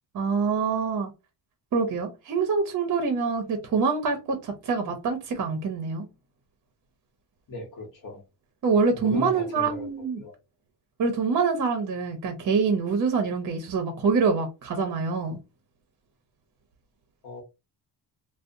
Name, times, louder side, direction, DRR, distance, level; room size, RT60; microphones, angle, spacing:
voice 1, 0.1-1.1 1.7-6.1 8.6-10.2 11.0-15.4, right 5 dB, 45° right, 0.6 m, -25 dB
voice 2, 7.5-8.2 8.9-9.9 10.1-10.3 17.2-17.4, left 1 dB, 50° left, 0.9 m, -37 dB
2.7 x 2.0 x 2.5 m
cardioid pair, 120°, 42 cm